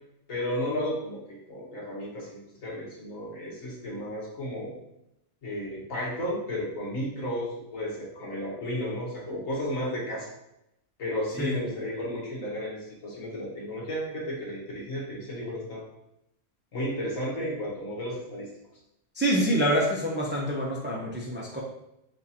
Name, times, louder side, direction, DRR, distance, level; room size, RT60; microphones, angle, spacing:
voice 1, 0.3-4.7 5.4-10.3 11.0-15.8 16.7-18.5, equal, 85° left, -4 dB, 1.8 m, -33 dB
voice 2, 19.2-21.6, equal, 10° right, -3 dB, 0.5 m, -26 dB
6.2 x 2.6 x 2.8 m, 0.83 s
omnidirectional pair, 1.3 m